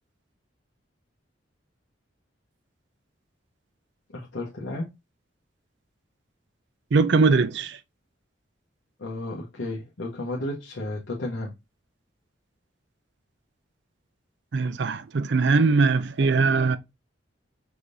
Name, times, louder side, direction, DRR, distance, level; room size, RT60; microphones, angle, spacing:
voice 1, 4.1-4.9 9.0-11.5, left 1 dB, 85° left, 0.9 m, -33 dB
voice 2, 6.9-7.8 14.5-16.8, right 4 dB, 65° right, 0.5 m, -21 dB
4.9 x 3.6 x 2.6 m
head